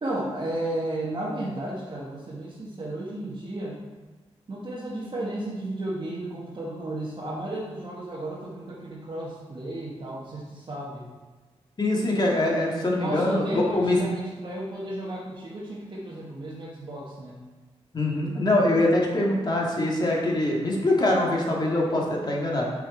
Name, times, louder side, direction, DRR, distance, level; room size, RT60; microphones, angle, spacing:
voice 1, 0.0-3.8 4.5-11.1 12.9-17.4, right 1 dB, 45° right, -5 dB, 1.3 m, -33 dB
voice 2, 11.8-14.0 17.9-22.7, left 1 dB, 40° left, -2 dB, 2.0 m, -23 dB
6.6 x 6.5 x 4.3 m, 1.3 s
cardioid pair, 80°, 11 cm